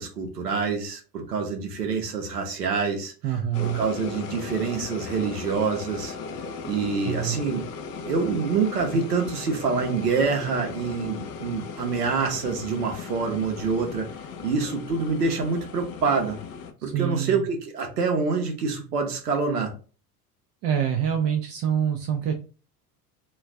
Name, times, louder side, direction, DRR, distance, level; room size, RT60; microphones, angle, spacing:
voice 1, 0.0-6.1 6.6-7.6 8.0-14.1 14.4-16.4 16.8-19.7, right 4 dB, 85° right, 3 dB, 0.7 m, -26 dB
voice 2, 3.2-3.8 7.0-7.4 16.9-17.5 20.6-22.3, right 9 dB, 35° right, 4 dB, 0.4 m, -25 dB
sound 1, 3.5-16.7, left 5 dB, 35° left, 0.4 m, -37 dB
2.3 x 2.3 x 3.2 m, 0.36 s
figure-of-eight pair, 75°, 46 cm